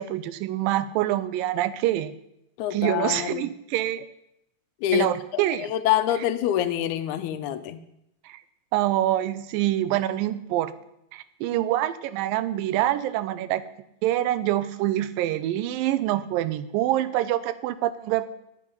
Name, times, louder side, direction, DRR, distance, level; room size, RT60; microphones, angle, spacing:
voice 1, 0.0-2.1 2.7-4.1 4.9-5.7 8.3-8.4 8.7-10.7 11.1-13.6 14.0-18.3, right 13 dB, 85° right, 14 dB, 2.3 m, -25 dB
voice 2, 2.6-3.5 4.8-7.8, left 12 dB, 75° left, 10 dB, 1.8 m, -26 dB
10.5 x 8.4 x 5.4 m, 0.81 s
omnidirectional pair, 4.0 m